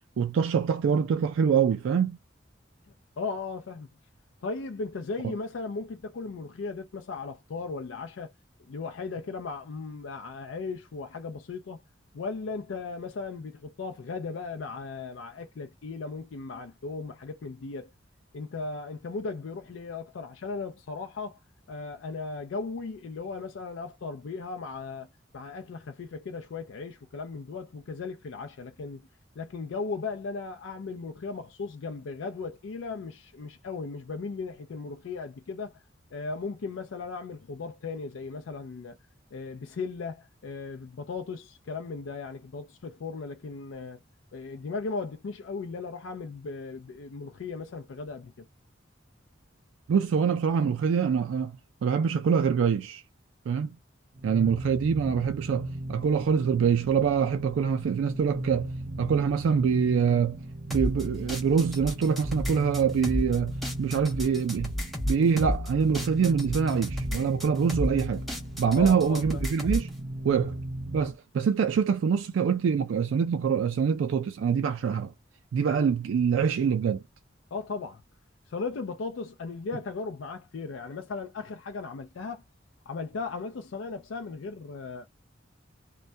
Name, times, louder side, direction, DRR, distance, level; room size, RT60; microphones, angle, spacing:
voice 1, 0.2-2.2 49.9-51.6 51.8-53.0 53.5-53.8 54.2-58.7 59.0-60.4 60.7-64.7 65.1-68.2 68.6-69.9 70.2-70.6 70.9-75.1 75.5-77.0, right 6 dB, 90° right, 0.3 m, -25 dB
voice 2, 3.2-3.9 4.4-8.3 8.6-11.8 12.1-17.9 18.3-21.4 21.7-25.1 25.3-29.0 29.4-35.8 36.1-39.0 39.3-44.0 44.3-48.5 68.7-69.4 77.5-78.0 78.5-82.4 82.9-85.1, left 4 dB, 80° left, 0.4 m, -37 dB
sound 1, 54.1-71.2, right 1 dB, 50° right, 0.7 m, -37 dB
sound 2, 60.7-69.9, left 1 dB, ahead, 0.7 m, -33 dB
2.2 x 2.2 x 2.6 m
head